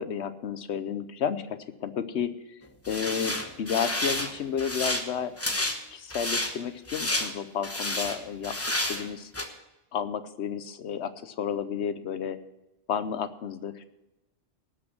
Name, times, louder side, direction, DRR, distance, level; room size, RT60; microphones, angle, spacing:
voice 1, 0.0-2.6 2.9-5.3 5.9-9.3 9.9-12.4 12.9-13.8, left 7 dB, 75° left, 12 dB, 1.1 m, -32 dB
sound 1, 2.8-4.3 4.6-5.0 5.4-5.8 6.1-6.5 6.9-7.3 7.6-8.2 8.4-9.1 9.3-9.4, left 1 dB, 15° left, 1.1 m, -30 dB
18.5 x 6.2 x 6.0 m, 0.98 s
omnidirectional pair, 1.2 m